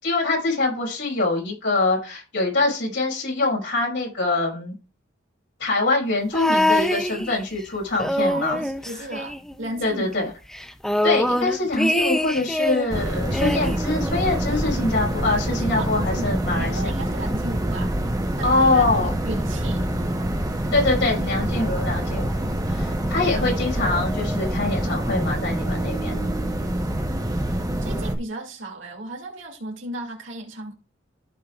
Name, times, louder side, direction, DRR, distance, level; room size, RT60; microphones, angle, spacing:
voice 1, 0.0-4.8 5.6-8.6 9.8-10.3 11.0-16.9 18.4-19.1 20.7-26.2, left 2 dB, 65° left, 5.6 m, -24 dB
'I don't think I want to be here any more', 6.3-7.6 7.9-9.9 10.1-10.2 10.5-12.9 13.3-14.6 15.5-15.6, left 1 dB, 5° left, 0.5 m, -24 dB
voice 2, 8.2-10.3 15.4-17.9 18.4-19.8 27.8-30.7, right 1 dB, 70° right, 2.6 m, -35 dB
sound 1, 12.9-28.1, right 1 dB, 20° right, 1.1 m, -26 dB
sound 2, 22.7-27.9, right 4 dB, 25° left, 1.7 m, -40 dB
15.5 x 5.6 x 2.5 m
head